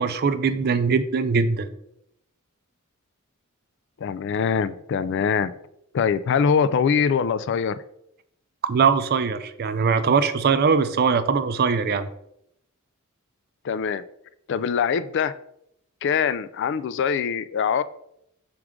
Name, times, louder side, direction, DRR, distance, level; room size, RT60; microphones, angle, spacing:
voice 1, 0.0-1.7 8.6-12.1, right 5 dB, 50° right, 11 dB, 0.4 m, -21 dB
voice 2, 4.0-5.5 5.9-7.8 13.6-14.0 14.5-15.3 16.0-17.8, left 6 dB, 55° left, 15 dB, 0.3 m, -23 dB
6.3 x 4.6 x 3.6 m, 0.76 s
head